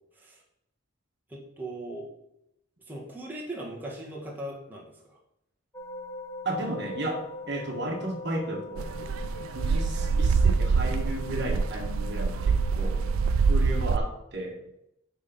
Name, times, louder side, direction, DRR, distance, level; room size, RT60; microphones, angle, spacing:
voice 1, 1.3-2.1 2.9-5.2 9.6-9.7, right 1 dB, 10° right, -4 dB, 1.3 m, -39 dB
sound 1, 5.7-13.6, left 2 dB, 15° left, 0.7 m, -42 dB
voice 2, 6.4-8.9 9.5-13.0 13.5-14.6, right 1 dB, 55° right, 1 dB, 1.4 m, -34 dB
sound 2, 8.8-14.0, right 5 dB, 90° right, 0.4 m, -25 dB
9.1 x 3.5 x 5.7 m, 0.81 s
head